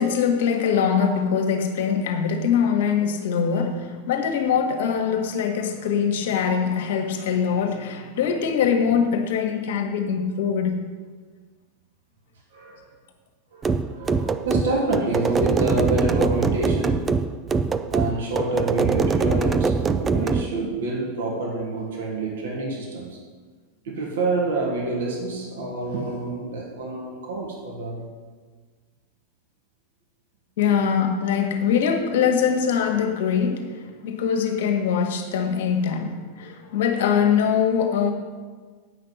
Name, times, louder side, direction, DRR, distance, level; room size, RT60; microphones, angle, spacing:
voice 1, 0.0-10.8 30.6-38.1, left 7 dB, 65° left, 4 dB, 1.5 m, -23 dB
voice 2, 12.5-12.9 13.5-17.0 17.9-23.2 23.8-28.1, right 2 dB, 70° right, -2 dB, 2.4 m, -27 dB
sound 1, 13.6-20.5, right 4 dB, 20° right, 0.5 m, -23 dB
8.6 x 5.9 x 8.1 m, 1.5 s
hypercardioid pair, 95°, 0 cm